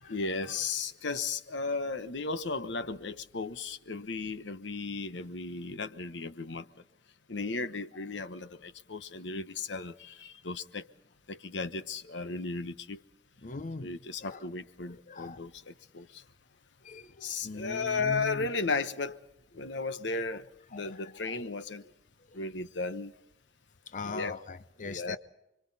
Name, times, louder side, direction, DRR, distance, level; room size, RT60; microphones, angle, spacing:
voice 1, 0.0-6.7 7.3-10.9 11.3-13.0 13.8-16.2 17.2-19.2 19.5-21.8 22.3-23.1 24.0-24.4 24.8-25.2, left 4 dB, 80° left, 1.1 m, -35 dB
voice 2, 13.4-13.9 14.2-14.5 14.9-15.5 16.8-18.5 20.7-21.4 22.3-22.4 23.9-25.2, left 3 dB, 45° left, 0.7 m, -41 dB
29.5 x 24.0 x 4.2 m
head